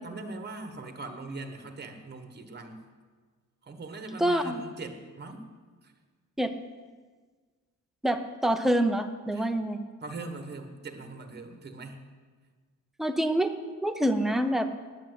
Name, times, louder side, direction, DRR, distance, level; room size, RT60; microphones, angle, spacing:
voice 1, 0.0-2.8 3.6-5.5 5.8-5.9 9.3-9.5 10.0-12.0, right 3 dB, 30° right, 6 dB, 1.2 m, -41 dB
voice 2, 4.2-4.6 6.4-6.5 8.0-9.8 13.0-13.5 13.8-14.7, right 1 dB, ahead, 7 dB, 0.6 m, -26 dB
10.0 x 8.6 x 9.2 m, 1.5 s
wide cardioid pair, 165°, 34 cm